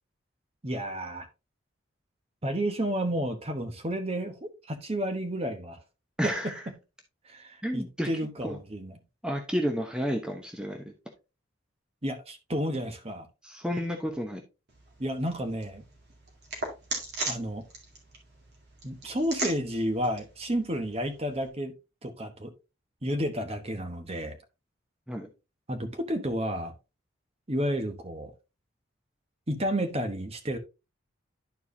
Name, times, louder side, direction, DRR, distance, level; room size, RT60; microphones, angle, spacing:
voice 1, 0.6-1.3 2.4-5.8 6.2-6.3 7.3-8.9 12.0-13.3 15.0-15.8 17.3-17.7 18.8-21.7 22.0-22.5 23.0-24.4 25.7-26.7 27.5-28.3 29.5-30.6, equal, 30° right, 1.0 m, -31 dB
voice 2, 6.2-6.6 7.6-8.1 8.4-8.6 9.2-10.9 13.4-14.4 25.1-25.3, equal, 5° right, 0.8 m, -31 dB
sound 1, 14.7-21.5, right 2 dB, 55° right, 2.3 m, -39 dB
11.5 x 4.6 x 2.7 m
head